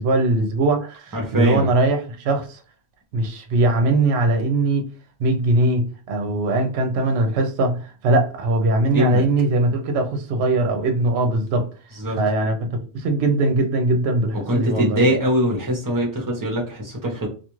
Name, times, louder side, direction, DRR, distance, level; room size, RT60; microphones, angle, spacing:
voice 1, 0.0-2.6 3.1-4.9 5.2-11.7 12.1-12.7 12.9-15.0, right 2 dB, 70° right, 0.8 m, -21 dB
voice 2, 1.1-1.7 8.9-9.2 12.0-12.2 14.5-17.3, equal, 20° right, 0.6 m, -22 dB
2.4 x 2.3 x 2.9 m
omnidirectional pair, 1.2 m